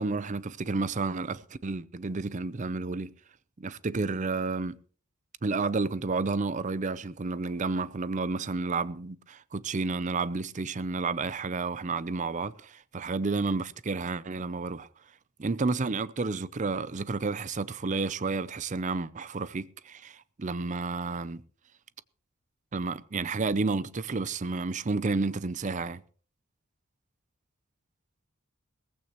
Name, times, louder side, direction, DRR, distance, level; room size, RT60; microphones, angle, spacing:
voice 1, 0.0-3.1 3.6-4.8 5.4-14.9 15.4-21.4 22.7-26.0, right 3 dB, 35° right, 0.5 m, -31 dB
18.5 x 15.0 x 3.0 m
head